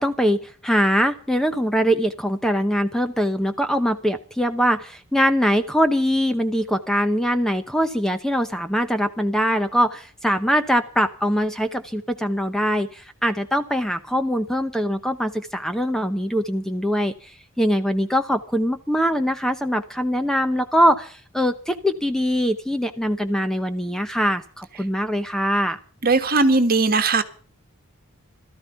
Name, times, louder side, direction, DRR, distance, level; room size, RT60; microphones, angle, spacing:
voice 1, 0.0-25.8, equal, ahead, 0.8 m, -22 dB
voice 2, 26.0-27.2, right 3 dB, 45° right, 1.6 m, -18 dB
17.0 x 13.5 x 5.7 m
head